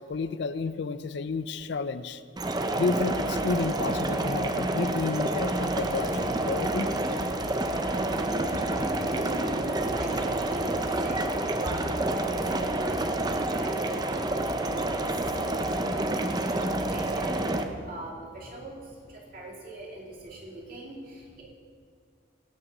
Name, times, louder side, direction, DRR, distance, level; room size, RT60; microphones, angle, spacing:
voice 1, 0.0-2.2 2.8-6.9, left 4 dB, 60° left, 14 dB, 0.4 m, -31 dB
sound 1, 2.4-17.6, right 1 dB, 20° right, 0.6 m, -28 dB
Motorcycle, 4.6-17.6, right 1 dB, 85° right, 1.8 m, -46 dB
voice 2, 8.7-11.2 11.6-21.4, right 2 dB, 45° right, -3 dB, 2.8 m, -41 dB
17.0 x 6.4 x 6.0 m, 2.2 s
head